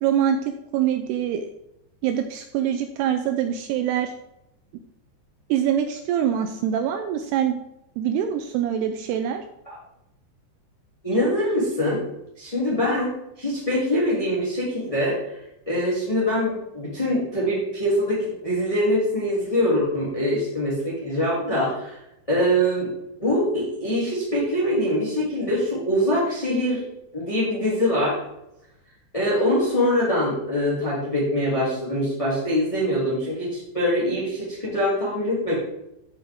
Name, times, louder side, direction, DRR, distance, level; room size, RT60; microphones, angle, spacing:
voice 1, 0.0-1.5 2.0-4.1 5.5-7.6 8.0-9.4, right 9 dB, 80° right, 6 dB, 2.4 m, -24 dB
voice 2, 11.0-12.0 12.4-13.1 13.4-15.3 15.6-22.0 22.3-22.9 23.2-26.8 27.1-28.2 29.1-35.5, equal, 10° left, -7 dB, 1.7 m, -23 dB
13.5 x 5.9 x 3.6 m, 0.85 s
omnidirectional pair, 5.1 m